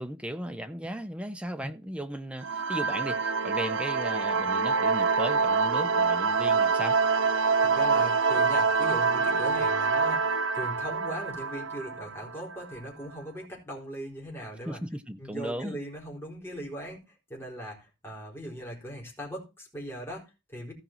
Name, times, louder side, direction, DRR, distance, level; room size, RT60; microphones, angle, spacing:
voice 1, 0.0-7.0 14.7-15.8, right 1 dB, 5° right, 0.8 m, -36 dB
sound 1, 2.4-12.8, right 4 dB, 90° right, 0.7 m, -26 dB
voice 2, 7.6-14.8 15.2-20.7, equal, 10° left, 4.3 m, -39 dB
15.5 x 5.5 x 4.5 m
head